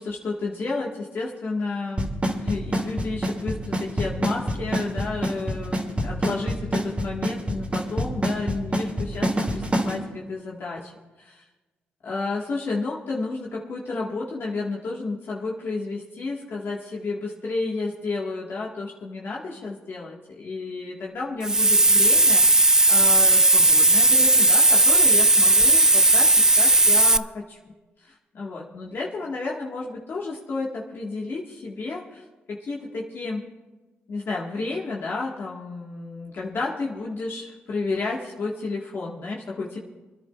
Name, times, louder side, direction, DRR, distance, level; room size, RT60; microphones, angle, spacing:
voice 1, 0.0-10.9 11.2-11.4 12.0-22.4 22.9-27.6 28.0-33.4 34.1-39.8, left 3 dB, 60° left, -3 dB, 1.6 m, -31 dB
Drum kit / Snare drum / Bass drum, 2.0-9.9, right 1 dB, 30° right, 2.5 m, -24 dB
Hiss, 21.4-27.2, right 2 dB, 15° right, 0.4 m, -16 dB
28.5 x 10.5 x 2.4 m, 1.2 s
cardioid pair, 65°, 4 cm